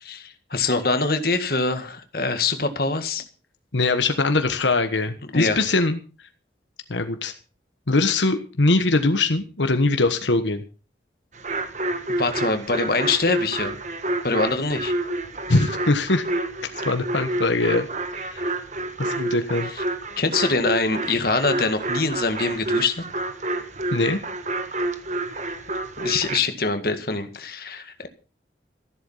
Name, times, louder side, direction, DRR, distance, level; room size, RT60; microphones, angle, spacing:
voice 1, 0.0-3.2 5.3-5.6 12.2-13.8 14.2-14.9 19.7-19.8 20.2-23.0 26.0-28.1, left 3 dB, 55° left, 7 dB, 1.9 m, -24 dB
voice 2, 3.7-6.0 6.9-7.3 7.9-10.6 15.5-16.2 16.8-17.9 18.2-18.5 19.0-19.7 23.9-24.2, left 2 dB, 85° left, 8 dB, 1.4 m, -22 dB
sound 1, 11.3-26.4, right 2 dB, 40° right, 1.5 m, -29 dB
14.5 x 11.5 x 5.6 m, 0.37 s
head